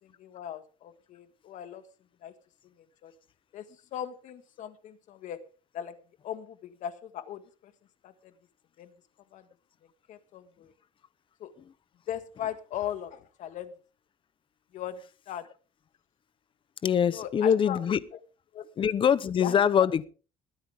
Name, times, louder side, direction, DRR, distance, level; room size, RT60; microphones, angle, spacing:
voice 1, 0.0-1.8 2.2-2.3 2.8-3.1 3.5-3.6 3.9-5.4 5.7-5.9 6.2-7.7 8.0-8.3 8.8-8.9 9.3-9.4 10.1-10.7 11.4-11.5 12.1-13.7 14.7-15.0 15.3-15.4 17.1-17.8 18.5-18.6 19.4-19.6, left 10 dB, 70° left, 1.7 m, -38 dB
voice 2, 16.8-18.0 18.8-20.1, left 8 dB, 40° left, 0.8 m, -23 dB
20.5 x 10.0 x 3.6 m
cardioid pair, 125°, 13 cm